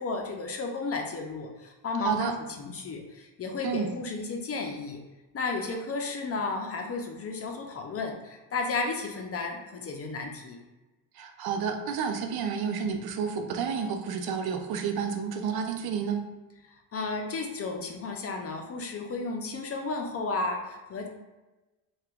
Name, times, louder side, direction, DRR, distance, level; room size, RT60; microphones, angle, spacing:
voice 1, 0.0-2.3 2.6-5.0 5.3-10.6 16.7-21.1, left 3 dB, 35° left, 3 dB, 0.5 m, -33 dB
voice 2, 2.0-2.3 3.6-3.9 11.2-16.2, right 6 dB, 70° right, 5 dB, 0.5 m, -30 dB
2.8 x 2.3 x 3.4 m, 1.1 s
cardioid pair, 115°, 39 cm